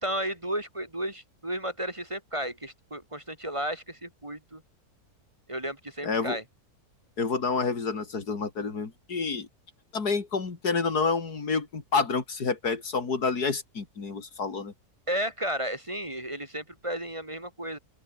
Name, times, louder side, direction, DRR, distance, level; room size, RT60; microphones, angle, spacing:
voice 1, 0.0-4.6 5.5-6.4 15.1-17.8, right 1 dB, 20° right, 2.0 m, -33 dB
voice 2, 6.0-6.4 7.2-9.5 9.9-14.7, left 4 dB, 90° left, 3.3 m, -28 dB
open air
omnidirectional pair, 1.6 m